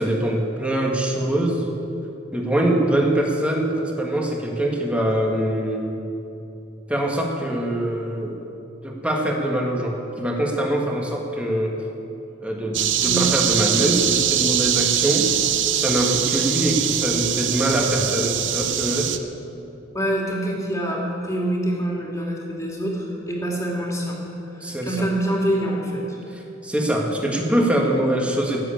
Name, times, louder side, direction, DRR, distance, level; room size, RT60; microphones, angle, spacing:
voice 1, 0.0-1.7 2.3-5.8 6.9-8.5 8.8-11.9 12.4-15.3 15.7-19.2 24.6-25.1 26.3-28.6, right 1 dB, 5° right, 0 dB, 1.7 m, -23 dB
sound 1, 12.7-19.2, right 10 dB, 65° right, 0.8 m, -22 dB
voice 2, 19.9-24.2 24.5-26.2, right 1 dB, 15° left, -2 dB, 2.6 m, -25 dB
15.5 x 7.9 x 9.0 m, 2.8 s
head